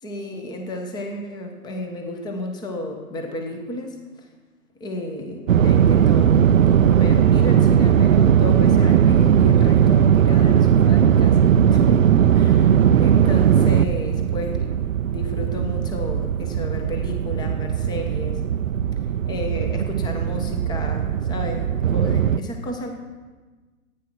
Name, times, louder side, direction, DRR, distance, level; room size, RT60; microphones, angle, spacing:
voice 1, 0.0-4.3 4.8-12.1 12.3-14.8 15.0-18.4 19.3-22.9, left 1 dB, 10° left, 4 dB, 1.2 m, -32 dB
sound 1, 5.5-22.4, right 9 dB, 60° right, 0.6 m, -18 dB
14.0 x 9.5 x 6.2 m, 1.3 s
figure-of-eight pair, 130°, 45 cm